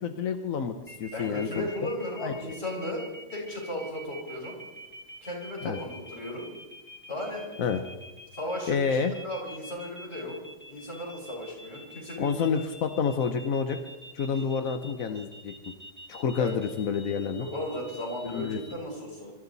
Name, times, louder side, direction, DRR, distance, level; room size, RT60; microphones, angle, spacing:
voice 1, 0.0-1.7 2.2-2.3 5.6-5.8 7.6-7.8 8.7-9.1 12.2-13.8 14.1-15.5 16.1-17.5 18.2-18.6, left 6 dB, 55° left, 7 dB, 1.0 m, -28 dB
sound 1, 0.9-18.7, equal, 5° left, 1.4 m, -47 dB
voice 2, 1.1-4.6 5.2-6.5 7.1-7.5 8.3-10.4 10.7-12.6 14.3-14.4 16.4-16.6 17.4-19.3, left 1 dB, 25° left, -3 dB, 5.9 m, -36 dB
25.5 x 14.0 x 4.1 m, 1.1 s
omnidirectional pair, 2.4 m